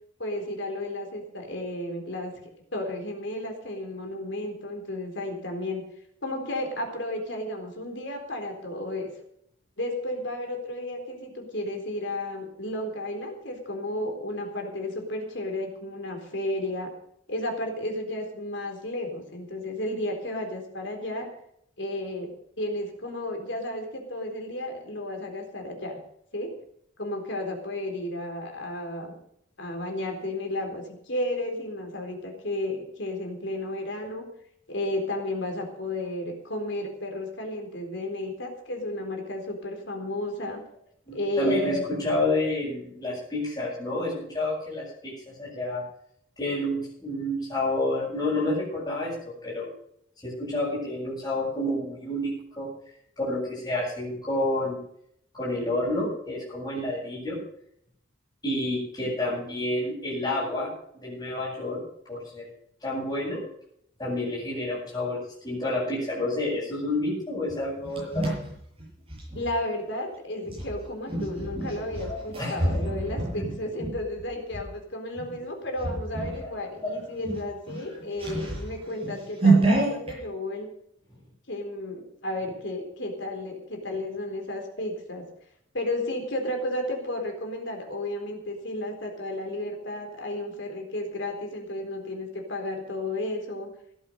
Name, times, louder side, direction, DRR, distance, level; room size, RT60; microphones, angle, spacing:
voice 1, 0.2-2.3 2.7-5.8 6.2-9.1 9.8-16.9 17.3-21.3 21.8-22.3 22.6-26.0 26.3-26.5 27.0-29.1 29.6-34.2 34.7-40.6 41.1-41.8 69.3-80.7 81.5-85.3 85.7-93.7, left 1 dB, 65° left, 3 dB, 4.0 m, -33 dB
voice 2, 41.1-45.8 46.4-49.2 49.4-49.7 50.2-52.7 53.2-54.8 55.3-57.4 58.4-61.8 62.1-62.5 62.8-63.4 64.0-65.2 65.4-68.4 72.1-72.6 73.3-73.4 76.8-76.9, left 1 dB, 20° left, -11 dB, 7.8 m, -29 dB
sound 1, 67.5-69.5 70.4-74.7 75.2-75.4 75.8-76.5 76.8-76.9 77.2-80.2, right 2 dB, 30° right, 7.8 m, -28 dB
16.5 x 11.0 x 5.4 m, 0.70 s
head